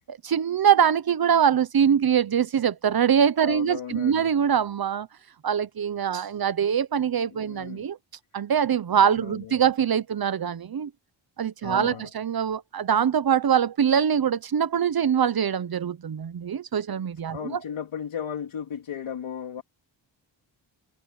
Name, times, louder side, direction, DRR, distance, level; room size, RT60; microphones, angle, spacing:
voice 1, 0.1-5.1 5.4-8.0 8.3-10.9 11.4-17.6, right 8 dB, 50° right, 1.0 m, -23 dB
voice 2, 3.4-4.3 7.3-7.9 9.0-9.5 11.6-12.1 17.3-19.6, left 8 dB, 85° left, 3.5 m, -35 dB
wide cardioid pair, 115°, 46 cm